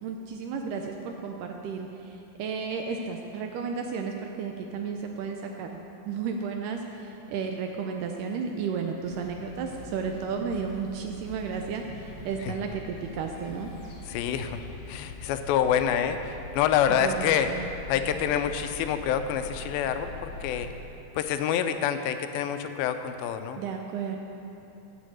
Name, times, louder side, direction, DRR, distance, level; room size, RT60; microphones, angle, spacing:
voice 1, 0.0-5.8 6.1-13.7 16.9-17.7 23.6-24.2, right 5 dB, 80° right, 3 dB, 2.0 m, -33 dB
sound 1, 9.0-20.7, left 2 dB, 55° left, 2.6 m, -43 dB
voice 2, 14.1-17.5 17.9-20.7 21.2-23.6, left 9 dB, 85° left, 8 dB, 2.3 m, -27 dB
9.9 x 5.7 x 7.6 m, 3.0 s
omnidirectional pair, 4.2 m